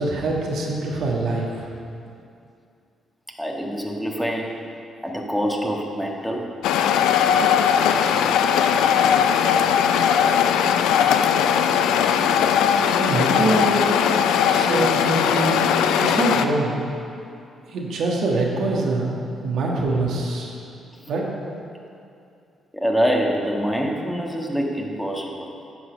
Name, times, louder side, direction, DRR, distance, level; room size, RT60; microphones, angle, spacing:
voice 1, 0.0-1.6 13.0-14.0 14.5-15.7 16.0-16.8 17.7-20.6 21.1-21.3, right 2 dB, 70° right, -2 dB, 1.5 m, -24 dB
voice 2, 3.4-4.7 5.0-6.5 21.0-21.1 22.7-25.5, equal, 5° left, 0 dB, 1.5 m, -25 dB
sound 1, 6.6-16.5, left 8 dB, 75° left, 0.4 m, -19 dB
9.9 x 6.2 x 5.1 m, 2.5 s
hypercardioid pair, 45°, 0 cm